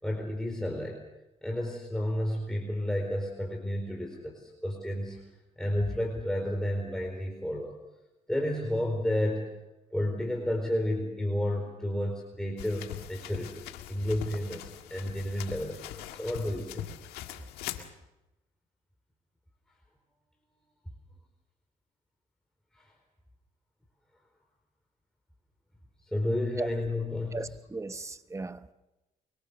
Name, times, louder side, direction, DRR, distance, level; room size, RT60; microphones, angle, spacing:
voice 1, 0.0-1.0 1.4-5.2 5.6-7.7 8.3-9.5 9.9-16.9 22.7-22.9 26.1-27.5, left 1 dB, 5° left, 4.5 m, -31 dB
sound 1, 12.6-17.9, left 12 dB, 90° left, 1.8 m, -42 dB
voice 2, 27.3-28.7, right 3 dB, 20° right, 1.1 m, -37 dB
24.0 x 23.0 x 6.9 m
supercardioid pair, 75°, 16 cm